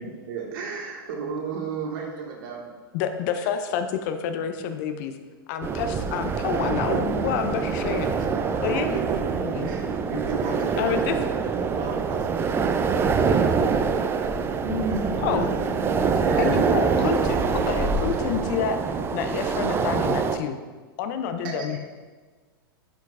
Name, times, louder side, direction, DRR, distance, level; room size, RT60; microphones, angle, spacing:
voice 1, 0.0-2.7 6.7-7.2 7.7-8.0 8.3-9.3 9.6-11.0 14.6-17.6 21.4-21.8, right 4 dB, 60° right, -1 dB, 1.7 m, -33 dB
voice 2, 2.9-5.2 5.5-8.1 8.6-8.9 9.4-9.7 10.8-11.2 15.2-15.5 16.4-17.4 17.7-18.8 19.1-20.6 21.0-21.8, left 7 dB, 50° left, 8 dB, 0.6 m, -28 dB
sound 1, 5.6-20.4, right 5 dB, 20° right, 0.4 m, -25 dB
voice 3, 10.4-14.3, right 5 dB, 40° right, 2 dB, 1.2 m, -39 dB
11.5 x 4.5 x 2.4 m, 1.4 s
hypercardioid pair, 105°, 13 cm